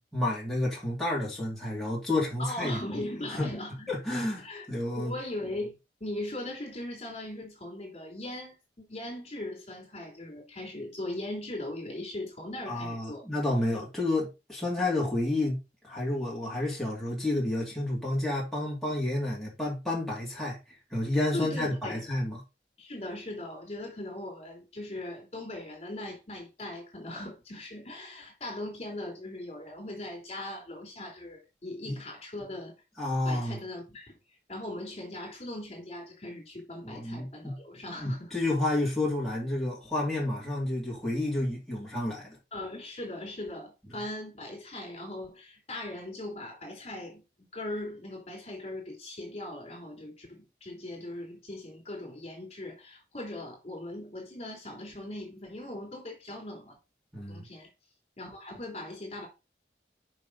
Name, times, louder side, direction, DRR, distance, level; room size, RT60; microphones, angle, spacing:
voice 1, 0.1-3.0 3.4-3.5 3.9-5.1 12.7-15.6 15.8-22.4 31.9-32.0 33.0-33.6 36.8-37.5 38.0-42.4 57.1-57.5, left 1 dB, ahead, 2.8 m, -30 dB
voice 2, 2.4-3.9 4.4-13.2 21.3-22.0 22.8-32.7 33.2-34.1 34.5-38.3 42.5-47.2 47.5-56.8 57.3-57.7 58.2-59.3, left 1 dB, 35° left, 3.2 m, -39 dB
6.6 x 5.5 x 4.0 m
head